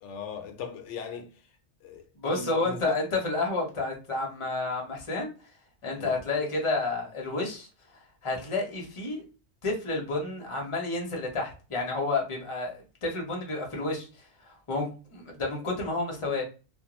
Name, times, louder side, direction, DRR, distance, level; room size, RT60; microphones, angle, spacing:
voice 1, 0.0-1.3 1.8-3.0 5.9-6.2, left 6 dB, 75° left, 0.9 m, -39 dB
voice 2, 2.1-5.3 5.8-7.7 8.2-9.2 9.6-14.1 14.5-16.4, left 3 dB, 30° left, 0.7 m, -30 dB
2.4 x 2.2 x 3.0 m
omnidirectional pair, 1.2 m